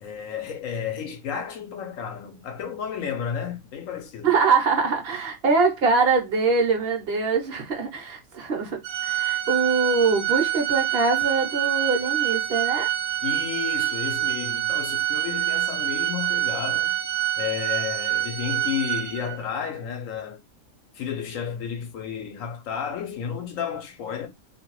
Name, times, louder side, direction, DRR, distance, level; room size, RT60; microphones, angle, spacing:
voice 1, 0.0-4.3 13.2-17.0 17.4-20.4 20.9-24.3, left 8 dB, 70° left, 1.0 m, -32 dB
voice 2, 4.2-12.9, right 4 dB, 50° right, 0.9 m, -23 dB
Organ, 8.8-19.5, right 13 dB, 75° right, 0.5 m, -26 dB
2.6 x 2.2 x 3.0 m
omnidirectional pair, 1.5 m